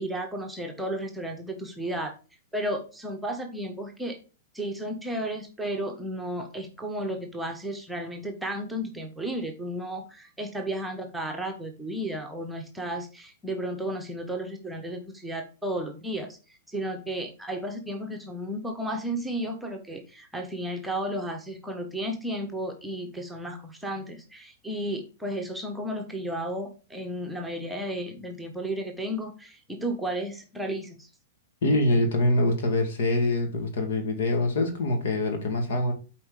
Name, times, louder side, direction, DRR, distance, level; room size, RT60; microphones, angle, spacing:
voice 1, 0.0-2.1 2.5-4.2 4.5-16.4 16.7-31.1, right 1 dB, 5° right, 1.2 m, -33 dB
voice 2, 31.6-35.9, left 1 dB, 55° left, 2.2 m, -24 dB
8.6 x 4.4 x 4.8 m
figure-of-eight pair, 105°, 0 cm